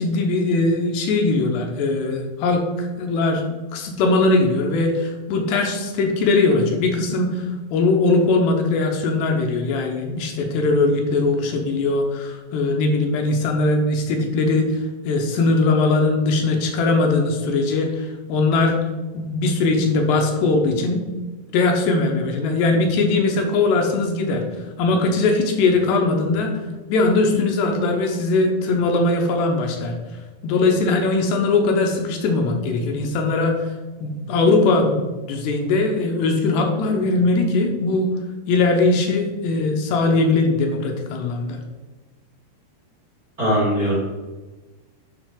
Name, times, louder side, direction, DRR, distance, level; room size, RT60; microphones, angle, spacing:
voice 1, 0.0-3.4 3.7-7.5 7.7-14.7 15.0-18.8 19.1-21.0 21.5-24.4 24.8-26.5 26.9-30.0 30.4-33.6 34.0-38.1 38.5-41.6, left 3 dB, 75° left, 3 dB, 2.8 m, -20 dB
voice 2, 43.4-44.0, equal, 85° right, -6 dB, 0.8 m, -20 dB
10.0 x 5.5 x 3.8 m, 1.2 s
omnidirectional pair, 5.2 m